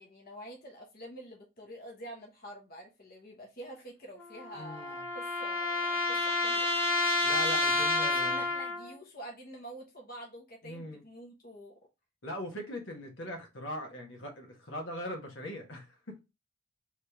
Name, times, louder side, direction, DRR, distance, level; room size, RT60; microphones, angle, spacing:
voice 1, 0.0-6.7 7.7-11.8, right 1 dB, 50° left, 1.1 m, -47 dB
sound 1, 4.2-8.9, left 2 dB, 10° left, 0.8 m, -30 dB
voice 2, 4.5-5.0 7.2-8.4 10.6-11.0 12.2-16.2, equal, 80° left, 1.3 m, -40 dB
3.6 x 3.1 x 3.5 m
head